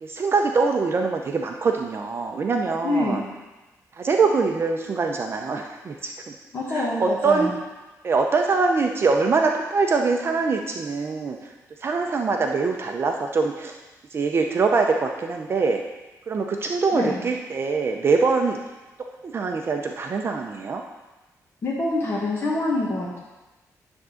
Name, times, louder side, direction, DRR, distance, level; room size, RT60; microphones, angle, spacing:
voice 1, 0.0-3.2 3.9-6.3 6.7-7.5 8.0-11.5 11.8-13.7 14.1-15.8 16.3-18.6 19.2-20.8, right 4 dB, 40° right, 3 dB, 0.6 m, -23 dB
voice 2, 2.8-3.3 6.5-7.5 16.9-17.2 21.6-23.2, left 2 dB, 40° left, -5 dB, 1.4 m, -26 dB
10.5 x 3.6 x 6.3 m, 1.1 s
wide cardioid pair, 150°, 6 cm